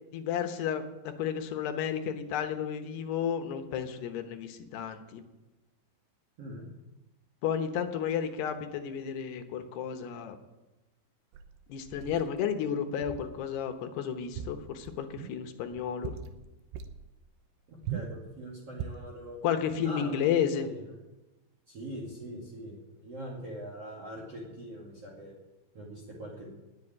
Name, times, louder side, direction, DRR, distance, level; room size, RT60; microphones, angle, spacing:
voice 1, 0.1-5.2 7.4-10.4 11.7-16.1 19.4-20.7, left 8 dB, 70° left, 7 dB, 2.8 m, -32 dB
sound 1, 11.3-12.3 13.0-13.4 13.7-13.8 14.2-15.4 15.7-16.4 16.7-17.0 17.8-18.2 18.7-19.1, right 8 dB, 75° right, 2.9 m, -40 dB
voice 2, 17.7-19.4 19.8-20.1 20.6-20.8 21.7-25.3 25.7-26.5, right 1 dB, 40° right, -1 dB, 2.6 m, -42 dB
19.0 x 7.9 x 8.8 m, 1.1 s
omnidirectional pair, 5.7 m